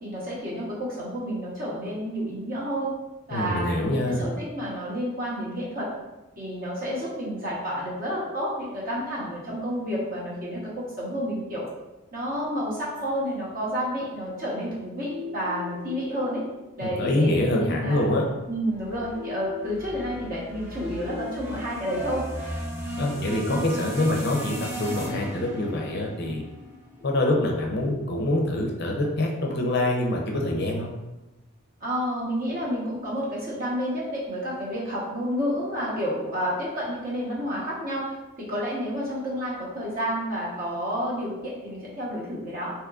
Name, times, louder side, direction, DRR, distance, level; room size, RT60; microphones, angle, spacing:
voice 1, 0.0-2.9 3.3-5.9 6.4-11.6 12.1-16.5 16.8-18.1 18.5-22.2 31.8-42.7, equal, 40° right, -5 dB, 0.9 m, -30 dB
voice 2, 3.3-4.2 16.8-18.2 23.0-26.4 27.0-30.9, left 1 dB, 50° left, 0 dB, 0.5 m, -25 dB
sound 1, 15.0-31.0, left 3 dB, 70° right, 1.1 m, -43 dB
sound 2, 18.7-27.1, right 1 dB, 10° right, 0.9 m, -36 dB
3.6 x 2.8 x 2.3 m, 1.0 s
head